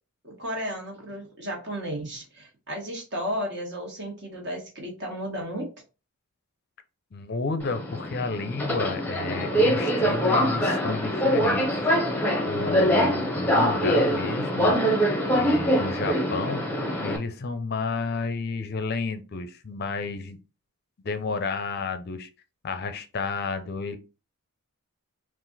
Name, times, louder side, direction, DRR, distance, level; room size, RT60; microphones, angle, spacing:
voice 1, 0.2-5.7, equal, 50° right, 0 dB, 1.5 m, -33 dB
voice 2, 7.1-11.9 12.5-14.8 15.3-16.6 17.0-20.4 21.0-22.3 22.6-24.0, left 4 dB, 45° left, 9 dB, 0.5 m, -31 dB
Subway metro underground, 7.6-17.2, equal, 10° left, 0.7 m, -24 dB
4.0 x 2.5 x 4.0 m, 0.31 s
head